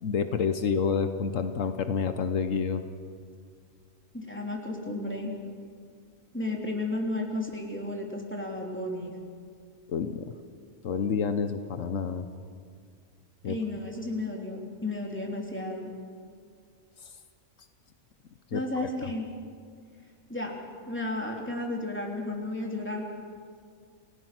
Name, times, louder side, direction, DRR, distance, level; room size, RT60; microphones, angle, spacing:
voice 1, 0.0-2.8 9.9-10.2 10.8-12.2 13.4-13.6 18.5-18.6, left 6 dB, 75° left, 9 dB, 1.2 m, -28 dB
voice 2, 4.1-5.3 6.3-9.1 13.4-15.9 18.5-19.2 20.3-20.6 20.9-23.0, left 2 dB, 10° left, -1 dB, 3.2 m, -33 dB
29.0 x 17.0 x 6.1 m, 2.1 s
omnidirectional pair, 1.4 m